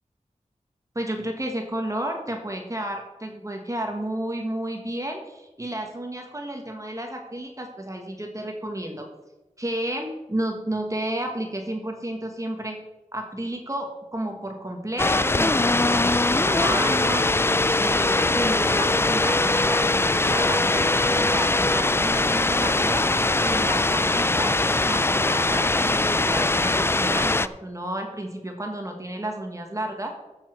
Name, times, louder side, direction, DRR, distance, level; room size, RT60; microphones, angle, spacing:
voice 1, 0.9-9.1 9.6-12.8 13.1-17.2 17.8-23.1 23.4-24.5 24.8-30.1, right 1 dB, 25° right, 3 dB, 1.5 m, -32 dB
sound 1, 15.0-27.5, left 2 dB, 20° left, 0.4 m, -21 dB
13.5 x 7.3 x 4.6 m, 1.1 s
wide cardioid pair, 75°, 13 cm